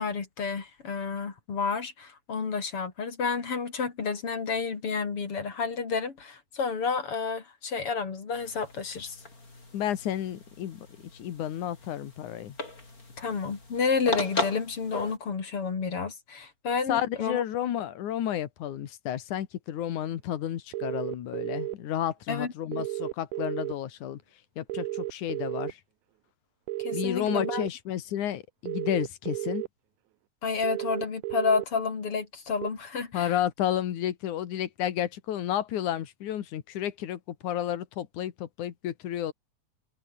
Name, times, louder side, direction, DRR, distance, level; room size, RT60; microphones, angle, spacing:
voice 1, 0.0-9.2 13.2-17.4 22.3-22.9 26.8-27.6 30.4-33.4, left 5 dB, 50° left, 3.7 m, -30 dB
sound 1, 8.3-15.2, left 2 dB, 30° left, 5.2 m, -37 dB
voice 2, 9.7-10.9 11.1-12.6 16.9-24.2 24.6-25.8 26.9-29.6 33.1-39.3, left 11 dB, 85° left, 3.1 m, -31 dB
sound 2, 20.7-21.8 22.7-23.7 24.7-25.7 26.7-27.7 28.7-29.7 30.6-31.7 32.6-32.7, right 18 dB, 85° right, 2.2 m, -33 dB
omnidirectional pair, 3.4 m